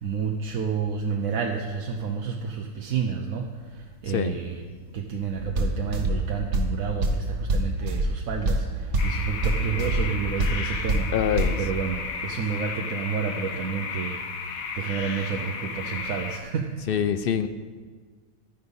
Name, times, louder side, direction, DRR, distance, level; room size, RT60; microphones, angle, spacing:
voice 1, 0.0-3.5 4.0-4.6 4.9-8.6 9.0-11.1 11.6-14.2 14.8-16.7, right 6 dB, 80° right, 2 dB, 1.2 m, -29 dB
voice 2, 4.1-4.4 11.1-11.6 16.9-17.5, left 8 dB, 65° left, 11 dB, 0.6 m, -25 dB
sound 1, 5.4-11.6, right 1 dB, 60° right, 1.4 m, -27 dB
sound 2, 9.0-16.4, left 5 dB, 90° left, 1.4 m, -34 dB
11.5 x 10.5 x 5.4 m, 1.5 s
omnidirectional pair, 1.4 m